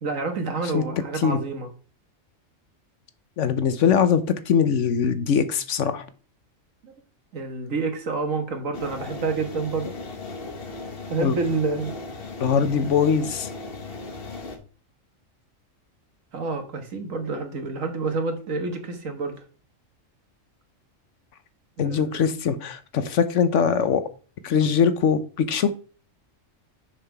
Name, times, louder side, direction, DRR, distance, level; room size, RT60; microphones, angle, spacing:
voice 1, 0.0-1.7 6.8-6.9 7.3-9.9 11.1-11.9 16.3-19.3 21.8-22.2, right 4 dB, 75° right, 6 dB, 1.8 m, -28 dB
voice 2, 3.4-6.0 11.2-11.3 12.4-13.5 21.8-24.0 24.4-25.7, left 7 dB, 65° left, 12 dB, 1.1 m, -22 dB
sound 1, 8.7-14.6, left 3 dB, 45° left, 1.4 m, -37 dB
6.5 x 5.8 x 4.5 m, 0.39 s
omnidirectional pair, 1.4 m